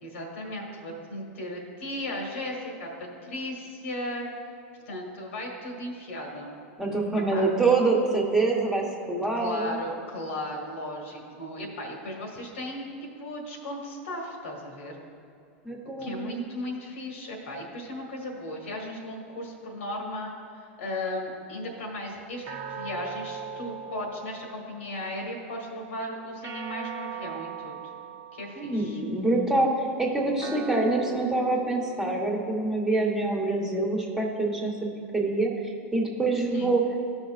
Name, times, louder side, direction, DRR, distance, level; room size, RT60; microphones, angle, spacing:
voice 1, 0.0-4.3 4.9-6.5 7.3-7.5 9.4-12.8 13.2-15.0 16.0-27.7 28.3-29.0 36.5-36.7, left 1 dB, 85° left, 0 dB, 1.8 m, -36 dB
voice 2, 6.8-9.8 15.6-16.5 28.6-29.7 30.0-34.7 35.1-36.8, right 2 dB, 5° right, -2 dB, 1.3 m, -25 dB
sound 1, 22.5-25.0 26.4-29.0 30.4-33.0, right 7 dB, 40° right, 0.8 m, -39 dB
14.0 x 5.4 x 2.5 m, 2.5 s
hypercardioid pair, 115°, 7 cm